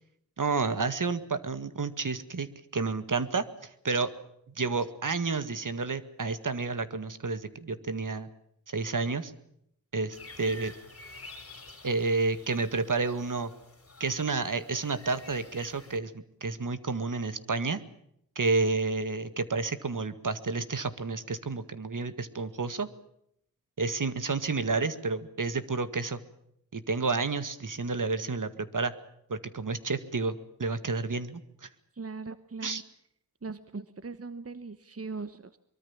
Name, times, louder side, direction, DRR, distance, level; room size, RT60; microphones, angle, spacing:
voice 1, 0.4-4.1 4.6-8.3 8.7-9.3 9.9-10.7 11.8-13.5 14.0-16.1 16.4-17.8 18.4-22.9 23.8-26.2 26.7-28.9 29.3-31.7 32.6-32.8, right 4 dB, 60° right, 12 dB, 2.0 m, -30 dB
sound 1, 10.1-16.0, left 2 dB, 40° left, 3.6 m, -49 dB
voice 2, 31.9-32.8 33.4-35.6, right 4 dB, 40° right, 12 dB, 1.2 m, -40 dB
23.5 x 23.0 x 7.3 m, 0.73 s
wide cardioid pair, 55°, 35 cm